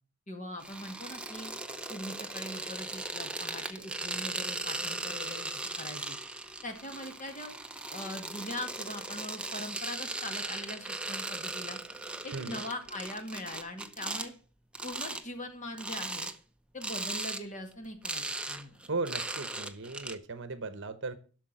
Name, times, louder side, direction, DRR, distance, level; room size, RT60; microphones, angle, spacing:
voice 1, 0.3-1.5 1.9-6.2 6.6-7.5 7.9-11.8 12.2-14.3 14.8-16.3 16.7-18.8, left 1 dB, 35° left, 5 dB, 2.0 m, -41 dB
sound 1, 0.6-14.3 14.7-15.2 15.7-16.4 16.8-17.4 17.7-20.2, right 2 dB, 5° right, 0.8 m, -38 dB
voice 2, 12.3-12.6 18.9-21.2, right 3 dB, 60° right, 12 dB, 1.0 m, -37 dB
12.0 x 6.5 x 7.7 m, 0.40 s
head